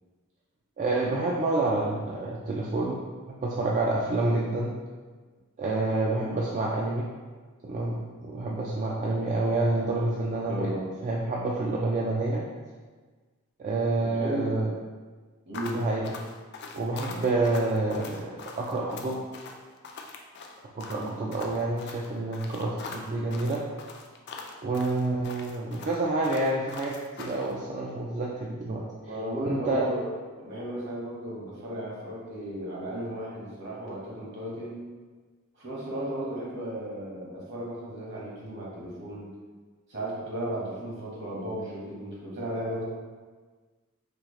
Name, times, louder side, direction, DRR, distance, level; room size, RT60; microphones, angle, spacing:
voice 1, 0.8-3.0 3.3-4.7 5.6-7.0 7.6-10.7 11.0-12.4 13.6-14.7 15.6-16.1 16.7-19.2 20.8-23.6 24.6-28.8 29.5-29.9, right 2 dB, 35° right, -4 dB, 0.3 m, -28 dB
voice 2, 10.4-10.8 14.0-14.6 15.4-15.9 20.9-21.4 29.0-30.1 30.4-34.8 35.5-39.3 39.9-42.8, right 1 dB, 55° right, -5 dB, 1.1 m, -35 dB
sound 1, 15.5-27.5, left 4 dB, 50° left, 0.4 m, -42 dB
4.2 x 2.3 x 3.1 m, 1.4 s
head